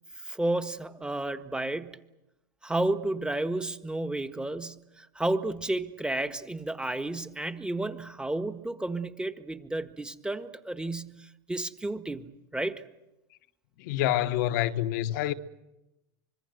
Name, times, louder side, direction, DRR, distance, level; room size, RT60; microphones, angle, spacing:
voice 1, 0.2-2.0 2.6-12.8, right 2 dB, 10° right, 1.6 m, -32 dB
voice 2, 13.8-15.3, left 13 dB, 70° left, 1.1 m, -27 dB
25.5 x 22.0 x 7.9 m
hypercardioid pair, 100°, 10 cm